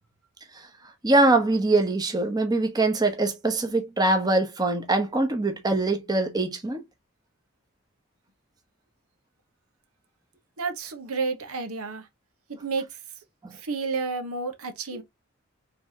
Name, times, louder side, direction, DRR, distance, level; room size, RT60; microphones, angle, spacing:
voice 1, 1.0-6.8 13.4-13.5 14.9-15.0, right 2 dB, 20° right, 0.9 m, -23 dB
voice 2, 10.6-12.0 12.6-12.9 13.6-15.0, right 4 dB, 90° right, 1.2 m, -30 dB
5.2 x 3.5 x 2.8 m
head